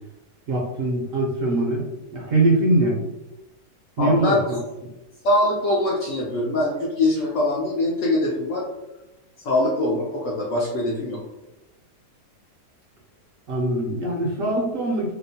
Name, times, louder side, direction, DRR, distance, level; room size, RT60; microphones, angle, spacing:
voice 1, 0.5-3.0 4.0-4.6 13.5-15.1, right 2 dB, 65° right, -2 dB, 0.8 m, -22 dB
voice 2, 4.0-4.6 5.2-8.7 9.4-11.2, left 1 dB, 70° left, -3 dB, 0.8 m, -23 dB
2.8 x 2.0 x 2.6 m, 0.96 s
omnidirectional pair, 1.8 m